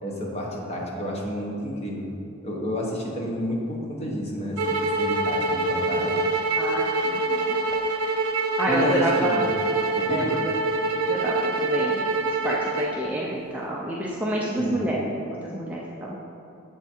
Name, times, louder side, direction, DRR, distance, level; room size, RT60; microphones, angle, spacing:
voice 1, 0.0-2.1 2.4-6.2 8.7-9.5 9.9-10.4 14.6-15.0, equal, 30° left, -2 dB, 0.9 m, -30 dB
sound 1, 4.6-12.9, right 2 dB, 85° right, 0.7 m, -25 dB
voice 2, 6.6-7.6 8.6-9.4 10.1-10.5 10.8-16.2, right 1 dB, 5° right, -5 dB, 0.4 m, -29 dB
7.2 x 3.5 x 4.3 m, 2.6 s
head